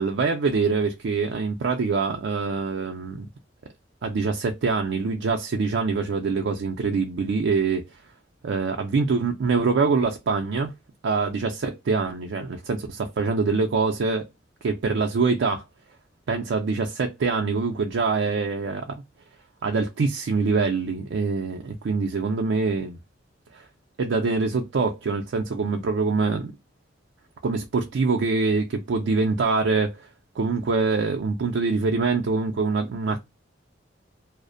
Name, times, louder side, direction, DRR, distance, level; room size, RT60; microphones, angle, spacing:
voice 1, 0.0-3.3 4.0-8.0 8.4-10.7 11.0-14.3 14.6-15.6 16.3-19.0 19.6-23.0 23.5-23.7 24.0-26.5 27.4-30.1 30.4-33.2, right 4 dB, 70° right, 0.4 m, -24 dB
2.4 x 2.0 x 2.4 m
head